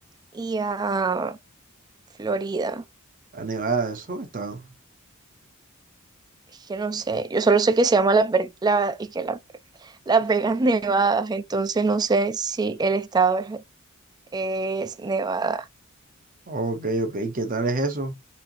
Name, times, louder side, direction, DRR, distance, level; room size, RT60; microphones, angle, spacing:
voice 1, 0.3-1.4 2.2-2.8 6.7-9.4 9.8-13.6 14.3-15.7, right 4 dB, 20° right, 0.3 m, -23 dB
voice 2, 3.3-4.7 16.5-18.1, right 3 dB, 40° right, 0.8 m, -27 dB
4.2 x 2.8 x 2.6 m
head